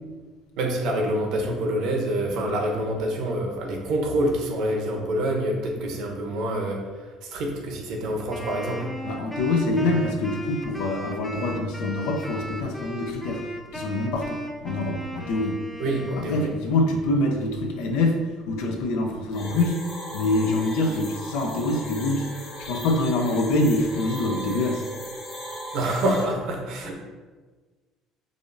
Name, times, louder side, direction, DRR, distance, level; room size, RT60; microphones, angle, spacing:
voice 1, 0.6-8.9 15.8-16.5 25.7-26.9, right 1 dB, 65° right, 1 dB, 0.7 m, -26 dB
Wind instrument woodwind instrument, 8.3-16.7, equal, 5° left, 0.4 m, -36 dB
voice 2, 9.0-13.4 13.7-15.6 16.2-19.9 20.1-24.8, left 2 dB, 90° left, 2 dB, 0.6 m, -25 dB
sound 1, 19.3-26.2, equal, 70° left, 1.4 m, -37 dB
4.8 x 2.6 x 2.6 m, 1.3 s
cardioid pair, 135°, 0 cm